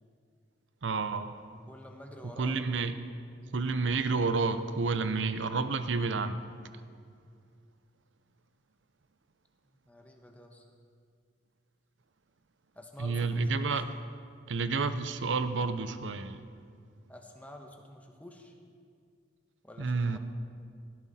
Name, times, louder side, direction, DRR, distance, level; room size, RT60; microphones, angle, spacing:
voice 1, 0.8-1.3 2.4-2.9 3.5-6.4 13.0-13.9 14.5-16.5 19.8-20.2, right 4 dB, 80° right, 11 dB, 0.7 m, -30 dB
voice 2, 1.5-2.6 9.7-10.6 12.7-13.5 17.1-18.5 19.6-20.2, left 1 dB, 10° left, 2 dB, 1.2 m, -49 dB
17.0 x 11.5 x 4.2 m, 2.2 s
head